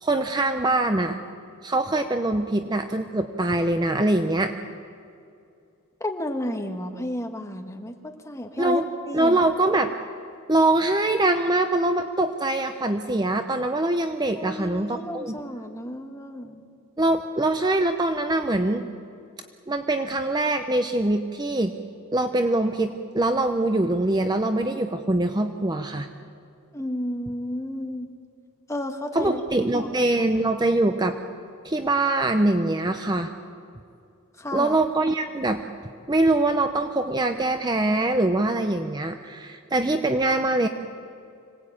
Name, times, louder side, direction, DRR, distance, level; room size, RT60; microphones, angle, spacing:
voice 1, 0.0-1.2 1.6-4.5 8.6-8.9 9.1-9.9 10.5-15.4 17.0-18.9 19.7-21.7 22.1-26.1 29.1-31.2 31.6-33.3 34.5-35.6 36.1-40.7, right 2 dB, 20° right, 7 dB, 0.7 m, -23 dB
voice 2, 6.0-8.8 9.1-9.4 14.4-16.6 26.7-28.1 28.7-29.4 29.8-30.0 34.4-34.8 40.3-40.4, left 1 dB, 15° left, 4 dB, 1.5 m, -32 dB
25.5 x 18.0 x 8.7 m, 2.4 s
head